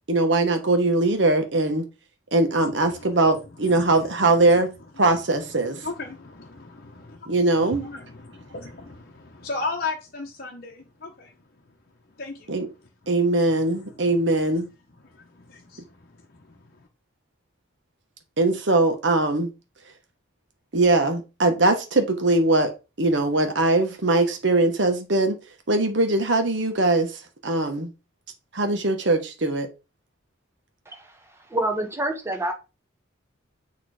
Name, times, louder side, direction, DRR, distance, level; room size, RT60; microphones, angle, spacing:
voice 1, 0.1-1.8 2.3-4.7 5.0-5.8 7.3-7.9 12.5-12.7 13.1-14.7 18.4-19.5 20.7-22.7 23.0-25.4 25.7-27.9 28.5-29.7, right 2 dB, 65° right, 1.2 m, -21 dB
voice 2, 2.6-3.1 3.6-4.6 5.0-5.1 5.6-11.3 12.2-12.5 13.8-14.0 15.0-16.9, left 3 dB, 50° left, 0.9 m, -37 dB
voice 3, 30.9-32.5, right 1 dB, 15° right, 1.1 m, -28 dB
6.6 x 3.1 x 4.8 m
head